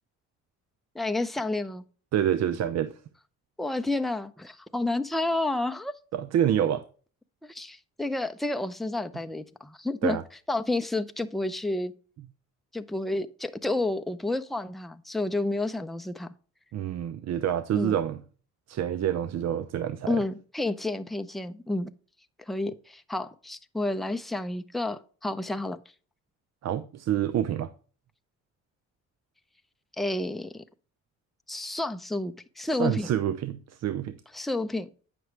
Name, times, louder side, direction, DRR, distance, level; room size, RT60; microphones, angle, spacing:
voice 1, 0.9-1.8 3.6-5.9 7.4-10.2 10.5-11.9 12.7-16.3 17.7-18.0 20.1-21.9 22.5-25.8 30.0-30.6 31.5-33.1 34.3-34.9, left 2 dB, ahead, 0.5 m, -30 dB
voice 2, 2.1-3.0 6.1-6.8 10.0-10.2 16.7-18.2 18.7-20.2 26.6-27.7 32.8-34.2, right 10 dB, 60° right, 0.6 m, -27 dB
9.1 x 6.1 x 3.2 m
cardioid pair, 90°, 30 cm